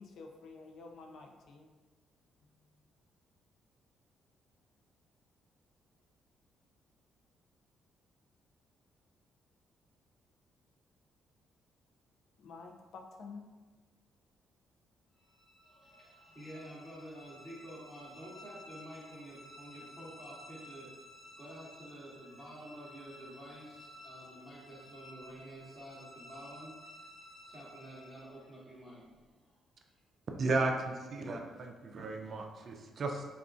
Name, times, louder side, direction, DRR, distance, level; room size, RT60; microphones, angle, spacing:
voice 1, 0.0-1.7 12.4-13.4, left 4 dB, 70° left, 2 dB, 0.4 m, -49 dB
sound 1, 15.2-28.6, left 1 dB, 25° left, 0.6 m, -54 dB
voice 2, 15.6-20.9 21.4-29.5, right 1 dB, 5° right, -8 dB, 0.9 m, -50 dB
voice 3, 30.4-33.2, right 2 dB, 50° right, 3 dB, 0.4 m, -34 dB
3.5 x 2.3 x 2.4 m, 1.3 s
cardioid pair, 90°, 0 cm